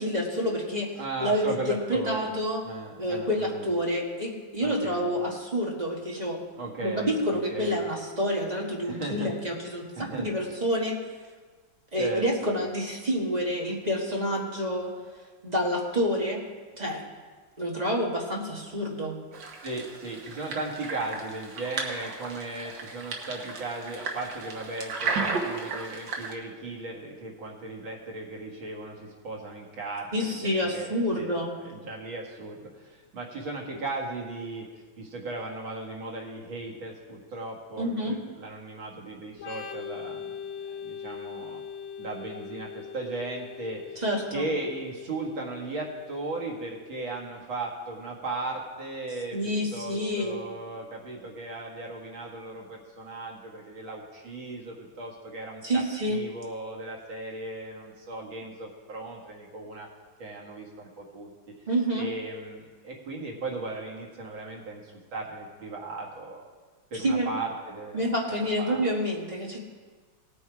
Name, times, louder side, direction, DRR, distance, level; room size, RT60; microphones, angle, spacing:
voice 1, 0.0-2.6 3.0-6.4 6.8-11.0 11.9-14.9 15.4-16.4 16.7-17.0 17.6-19.2 30.1-31.5 37.8-38.2 44.0-44.5 49.3-50.4 55.6-56.2 61.7-62.1 67.0-67.3 67.9-69.6, equal, 25° right, -2 dB, 1.5 m, -28 dB
voice 2, 1.0-2.3 2.6-3.7 4.6-5.1 6.6-7.8 8.8-9.6 10.0-10.3 12.0-12.5 19.6-31.3 31.6-34.7 35.0-40.4 40.7-41.6 42.0-44.0 44.3-55.8 56.1-59.9 60.2-61.3 62.0-66.5 66.9-68.8, right 2 dB, 85° right, -2 dB, 2.7 m, -37 dB
sound 1, 19.3-26.3, right 4 dB, 70° right, 2.0 m, -34 dB
Organ, 39.4-46.9, left 7 dB, 70° left, 2.4 m, -42 dB
18.0 x 7.1 x 4.8 m, 1.4 s
omnidirectional pair, 2.1 m